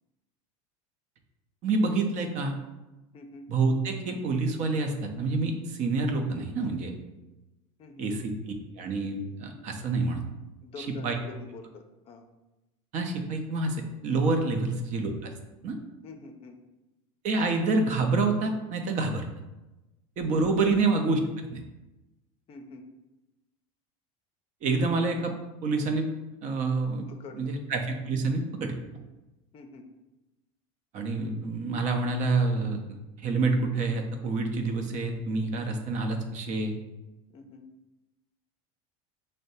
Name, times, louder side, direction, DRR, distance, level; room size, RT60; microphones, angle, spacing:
voice 1, 1.6-2.5 3.5-6.9 8.0-8.3 8.8-10.2 10.8-11.2 12.9-15.3 15.6-15.8 17.2-19.3 20.2-21.6 24.6-25.3 25.6-26.1 26.4-27.1 27.3-28.8 30.9-36.7, right 3 dB, 45° right, 4 dB, 0.7 m, -27 dB
voice 2, 3.1-3.5 7.8-8.1 10.6-12.2 14.5-14.6 16.0-16.6 20.6-20.8 22.5-22.8 27.1-27.5 29.5-29.8 37.3-37.6, left 4 dB, 35° left, 6 dB, 0.6 m, -45 dB
6.3 x 2.2 x 2.7 m, 1.0 s
supercardioid pair, 115°, 17 cm